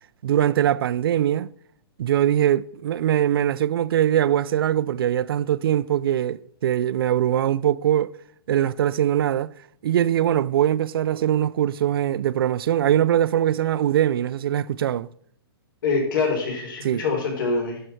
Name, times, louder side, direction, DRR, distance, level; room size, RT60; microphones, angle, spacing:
voice 1, 0.2-1.5 2.0-8.2 8.5-9.5 9.8-15.1 16.8-17.0, right 11 dB, 65° right, 0.4 m, -22 dB
voice 2, 15.8-17.8, left 4 dB, 60° left, 4.2 m, -24 dB
11.0 x 6.7 x 4.5 m
hypercardioid pair, 160°, 13 cm